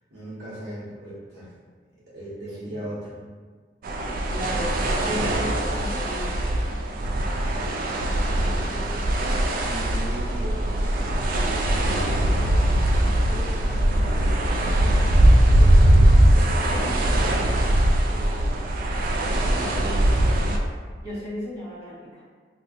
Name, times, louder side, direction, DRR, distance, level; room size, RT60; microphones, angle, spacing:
voice 1, 0.1-1.5 2.1-3.2 4.3-4.6 8.0-11.2 11.9-17.4 18.1-18.6 19.5-19.9, right 1 dB, 70° right, -10 dB, 1.1 m, -38 dB
sound 1, 3.8-20.6, right 1 dB, 55° right, 0.3 m, -21 dB
voice 2, 4.3-6.5 19.8-20.6 21.0-22.2, equal, 20° right, -11 dB, 1.3 m, -34 dB
2.6 x 2.4 x 3.6 m, 1.5 s
head